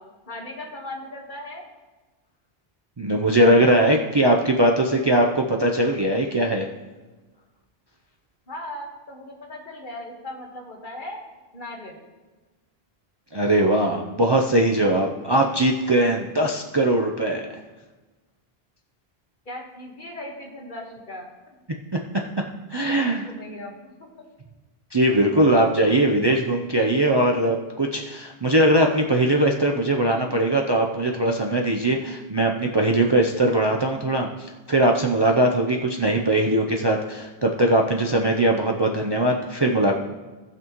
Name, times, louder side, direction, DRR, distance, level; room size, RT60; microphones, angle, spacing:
voice 1, 0.0-1.6 4.8-5.0 8.5-11.2 11.5-12.0 19.5-21.3 22.9-24.3, left 1 dB, 50° left, 0 dB, 1.6 m, -38 dB
voice 2, 3.0-6.7 13.3-17.5 22.7-23.3 24.9-40.0, right 1 dB, 30° right, 0 dB, 0.6 m, -20 dB
18.0 x 6.0 x 3.0 m, 1.2 s
omnidirectional pair, 1.0 m